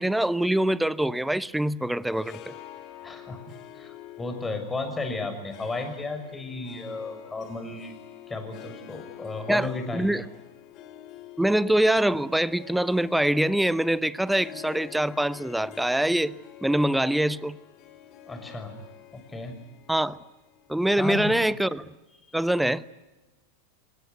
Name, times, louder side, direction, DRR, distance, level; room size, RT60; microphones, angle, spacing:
voice 1, 0.0-2.4 9.5-9.7 9.9-10.2 11.4-16.4 16.6-17.6 19.9-20.2 20.7-21.9 22.3-22.8, right 1 dB, 5° right, 0.9 m, -24 dB
Harp, 2.0-21.4, left 12 dB, 45° left, 3.5 m, -47 dB
voice 2, 3.0-3.4 3.7-7.9 8.3-10.2 18.3-18.7 19.1-19.5 20.9-21.3 22.3-22.4, left 3 dB, 15° left, 6.2 m, -34 dB
26.0 x 21.0 x 9.6 m
hypercardioid pair, 95°, 0 cm